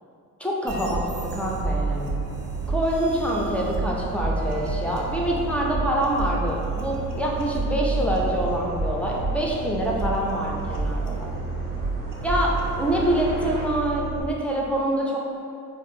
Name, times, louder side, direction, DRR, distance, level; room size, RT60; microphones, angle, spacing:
voice 1, 0.4-2.2 2.7-11.3 12.2-15.2, equal, 5° left, -3 dB, 0.4 m, -26 dB
sound 1, 0.7-14.2, right 4 dB, 65° right, 0.5 m, -30 dB
sound 2, 1.3-13.6, equal, 30° right, 0.7 m, -39 dB
2.7 x 2.3 x 2.6 m, 2.4 s
cardioid pair, 65°, 35 cm